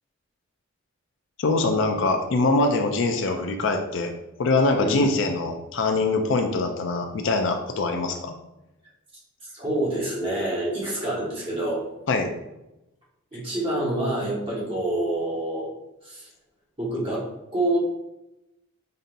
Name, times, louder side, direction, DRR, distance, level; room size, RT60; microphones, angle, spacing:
voice 1, 1.4-4.1 4.4-8.3 12.1-12.3, left 3 dB, 55° left, 5 dB, 0.4 m, -23 dB
voice 2, 9.5-11.9 13.3-15.7 16.0-16.3 16.8-17.8, right 1 dB, 25° right, -6 dB, 1.2 m, -27 dB
5.3 x 2.7 x 2.5 m, 0.92 s
head